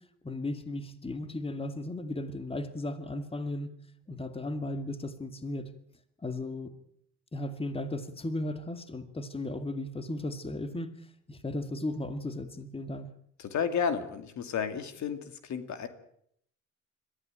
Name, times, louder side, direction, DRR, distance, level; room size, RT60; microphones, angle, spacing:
voice 1, 0.2-3.7 4.1-5.7 6.2-6.7 7.3-13.1, left 1 dB, 20° left, 9 dB, 2.2 m, -36 dB
voice 2, 13.4-15.9, left 6 dB, 70° left, 9 dB, 2.6 m, -32 dB
22.0 x 15.0 x 9.0 m, 0.70 s
cardioid pair, 90°, 30 cm